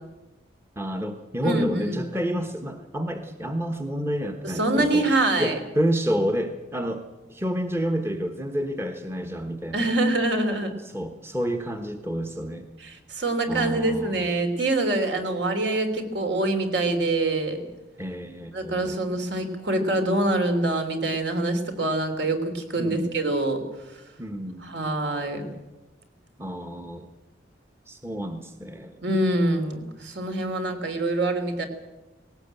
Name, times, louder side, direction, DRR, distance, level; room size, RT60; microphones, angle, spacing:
voice 1, 0.8-5.1 5.4-7.0 7.3-9.9 10.8-12.7 13.5-14.3 18.0-19.0 22.8-23.1 24.2-24.7 26.4-27.1 27.9-29.0, equal, 15° right, 6 dB, 1.1 m, -29 dB
voice 2, 1.4-1.9 4.4-5.6 9.7-10.7 12.8-17.6 18.5-23.6 24.6-25.4 29.0-31.7, right 2 dB, 65° right, 6 dB, 3.2 m, -25 dB
18.5 x 17.5 x 9.0 m, 1.1 s
head